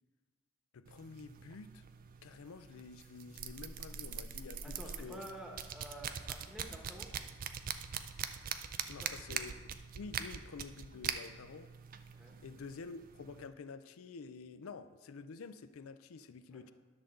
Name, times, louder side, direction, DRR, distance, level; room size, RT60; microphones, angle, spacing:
voice 1, 0.7-1.8 2.2-5.2 8.9-9.5 9.9-11.7 12.4-16.7, left 4 dB, 80° left, 12 dB, 0.4 m, -49 dB
sound 1, 0.9-13.5, right 8 dB, 40° right, 0.3 m, -43 dB
voice 2, 4.6-7.1 9.0-9.4 12.1-12.4 16.5-16.6, right 1 dB, ahead, -1 dB, 1.0 m, -50 dB
10.5 x 3.8 x 6.7 m, 1.4 s
head